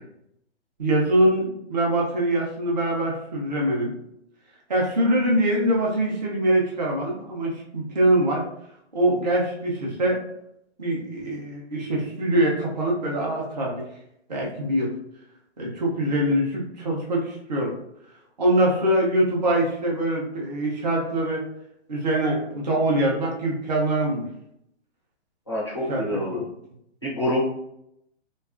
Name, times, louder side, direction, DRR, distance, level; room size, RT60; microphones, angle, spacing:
voice 1, 0.8-3.9 4.7-8.4 8.9-10.2 10.8-13.8 14.3-14.9 15.6-17.7 18.4-21.4 21.9-24.2 25.9-26.0 26.3-26.5, right 1 dB, 40° right, -2 dB, 0.5 m, -23 dB
voice 2, 25.5-26.4 27.0-27.4, left 1 dB, 25° left, -6 dB, 0.4 m, -26 dB
2.7 x 2.3 x 2.4 m, 0.78 s
hypercardioid pair, 175°, 35 cm